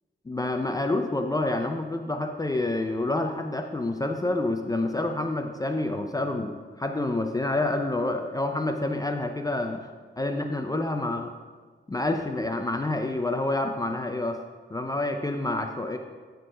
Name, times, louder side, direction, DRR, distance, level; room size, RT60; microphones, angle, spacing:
voice 1, 0.3-9.9 10.2-11.3 11.9-14.4 14.7-16.0, left 2 dB, 20° left, 4 dB, 0.4 m, -28 dB
9.2 x 4.5 x 4.8 m, 1.5 s
wide cardioid pair, 155°, 20 cm